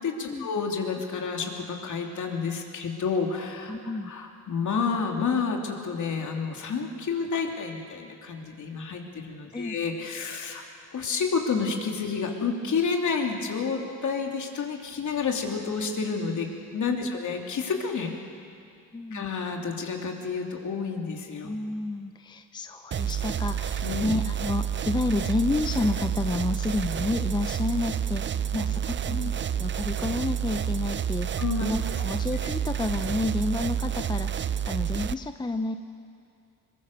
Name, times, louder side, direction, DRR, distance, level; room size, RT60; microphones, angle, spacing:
voice 1, 0.0-10.6 10.9-18.1 19.1-21.5 23.8-24.1 29.1-29.2 31.4-31.7 32.4-32.5, left 5 dB, 50° left, 2 dB, 3.1 m, -30 dB
voice 2, 3.7-4.1 9.5-9.8 17.0-17.2 18.9-19.2 21.4-35.7, left 2 dB, 10° left, 8 dB, 0.7 m, -30 dB
sound 1, 22.9-35.1, right 9 dB, 30° right, 0.5 m, -29 dB
22.5 x 22.0 x 6.9 m, 2.4 s
cardioid pair, 90°, 37 cm